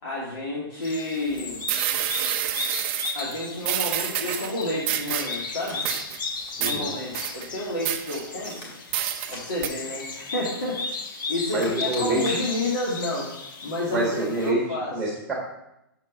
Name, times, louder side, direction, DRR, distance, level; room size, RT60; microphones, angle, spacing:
voice 1, 0.0-1.7 3.1-5.8 6.6-8.7 9.3-10.8 11.3-13.3 13.6-14.9, left 1 dB, 75° left, -7 dB, 2.5 m, -30 dB
sound 1, 0.8-14.5, left 3 dB, 55° left, 1.1 m, -35 dB
sound 2, 1.3-1.4 1.7-3.2 3.6-4.5 4.9-5.4 5.7-6.2 6.6-6.8 7.1-7.5 7.9-8.6 8.9-9.4 9.6-9.7, right 11 dB, 30° right, 0.5 m, -28 dB
Walk footsteps, 5.7-6.0 6.3-6.7 7.1-8.1 8.5-9.7 10.0-10.3 10.7-11.1 11.4-12.6 13.0-13.2, left 1 dB, 30° left, 2.2 m, -45 dB
voice 2, 6.6-6.9 11.5-12.3 13.9-14.6 14.9-15.3, right 2 dB, 5° right, -2 dB, 1.3 m, -26 dB
6.6 x 4.4 x 6.1 m, 0.84 s
hypercardioid pair, 160°, 12 cm